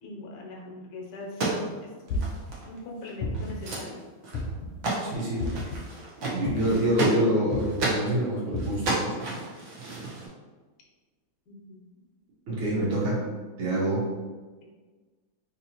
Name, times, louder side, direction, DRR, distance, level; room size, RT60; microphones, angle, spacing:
voice 1, 0.0-1.9 2.7-4.0 11.5-11.8, left 2 dB, 70° left, -2 dB, 1.4 m, -41 dB
sound 1, 1.2-2.8 3.0-3.1 3.3-3.9 4.2-4.5 4.8-8.1 8.6-10.3, right 2 dB, 60° right, 0.9 m, -32 dB
sound 2, 2.1-2.5 3.2-3.7 4.3-4.8 5.4-5.8 6.5-6.9 7.5-7.8 8.5-8.9, left 2 dB, 85° left, 1.5 m, -31 dB
voice 2, 5.0-5.5 6.3-9.2 12.5-13.2 13.6-14.0, right 1 dB, 85° right, -7 dB, 1.8 m, -26 dB
3.9 x 2.8 x 2.8 m, 1.3 s
omnidirectional pair, 2.2 m